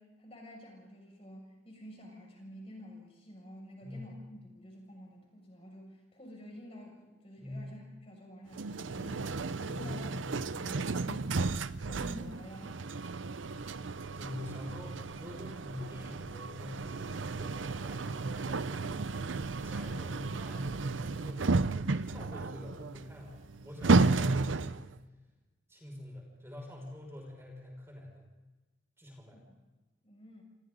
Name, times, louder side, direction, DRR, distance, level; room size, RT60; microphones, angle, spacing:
voice 1, 0.0-10.1 10.4-12.8 29.3-29.4 30.0-30.4, equal, 30° left, 0 dB, 6.7 m, -50 dB
voice 2, 7.4-7.7 9.7-10.2 13.4-13.7 14.1-19.1 19.3-21.5 21.9-24.9 25.7-28.2 29.0-29.4, left 1 dB, 15° right, -1 dB, 6.1 m, -46 dB
sound 1, 8.5-24.9, right 3 dB, 90° right, 0.7 m, -33 dB
28.0 x 28.0 x 4.0 m, 1.2 s
head